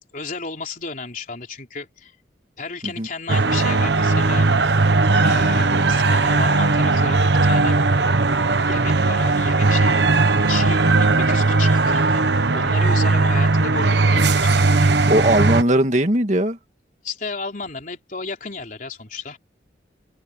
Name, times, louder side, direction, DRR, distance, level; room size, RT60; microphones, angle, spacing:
voice 1, 0.1-2.1 2.6-4.5 5.2-7.8 8.7-10.0 10.5-14.9 17.0-19.4, left 4 dB, 50° left, 3.8 m, -33 dB
sound 1, 3.3-15.6, right 3 dB, 80° right, 1.1 m, -18 dB
voice 2, 15.1-16.6, right 1 dB, 40° right, 2.0 m, -18 dB
open air
head